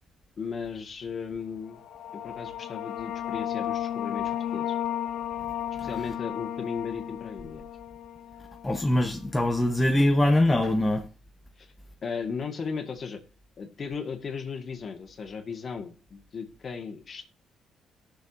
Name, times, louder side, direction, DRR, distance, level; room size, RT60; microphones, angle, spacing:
voice 1, 0.4-1.8 2.1-4.7 5.8-7.6 11.6-11.7 12.0-13.2 13.6-17.3, left 5 dB, 45° left, 1.7 m, -36 dB
sound 1, 1.7-9.0, left 11 dB, 80° left, 0.6 m, -34 dB
voice 2, 8.6-11.0, left 1 dB, 15° left, 1.0 m, -23 dB
18.5 x 6.5 x 2.7 m
cardioid pair, 90°, 0 cm